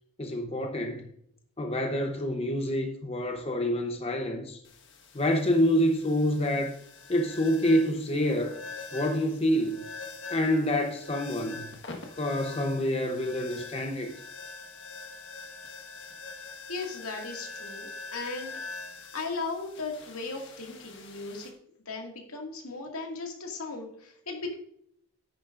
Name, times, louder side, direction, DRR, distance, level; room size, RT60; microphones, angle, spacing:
voice 1, 0.2-1.1 1.6-4.6 5.1-6.7 7.1-8.6 8.9-9.8 10.3-11.6 12.2-14.1, left 1 dB, 25° left, 0.8 m, -27 dB
sound 1, 4.6-21.5, left 3 dB, 55° left, 1.5 m, -44 dB
voice 2, 16.7-18.5 19.1-21.5 21.9-24.5, left 3 dB, 80° left, 2.1 m, -37 dB
10.0 x 9.6 x 2.5 m
head